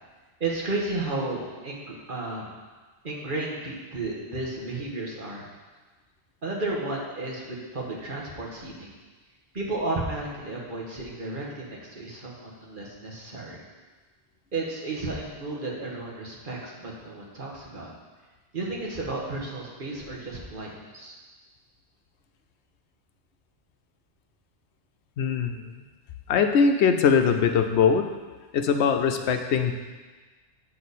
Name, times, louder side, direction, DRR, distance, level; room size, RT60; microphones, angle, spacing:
voice 1, 0.4-2.5 3.0-5.5 6.4-8.9 9.5-13.6 14.5-17.9 18.5-21.2, right 2 dB, 50° right, -4 dB, 1.6 m, -33 dB
voice 2, 25.2-25.9 26.3-28.1 28.5-29.7, left 6 dB, 85° left, 6 dB, 0.9 m, -22 dB
7.6 x 6.5 x 4.2 m, 1.3 s
omnidirectional pair, 1.1 m